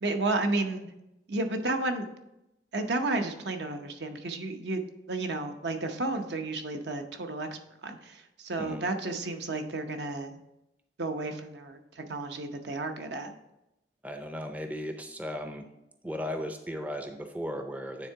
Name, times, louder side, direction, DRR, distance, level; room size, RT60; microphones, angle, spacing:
voice 1, 0.0-0.9 1.3-2.1 2.7-10.4 11.0-13.3, right 2 dB, 75° right, 5 dB, 0.8 m, -32 dB
voice 2, 14.0-15.7 16.0-18.1, equal, 10° right, 6 dB, 0.4 m, -36 dB
9.3 x 3.7 x 4.5 m, 0.90 s
head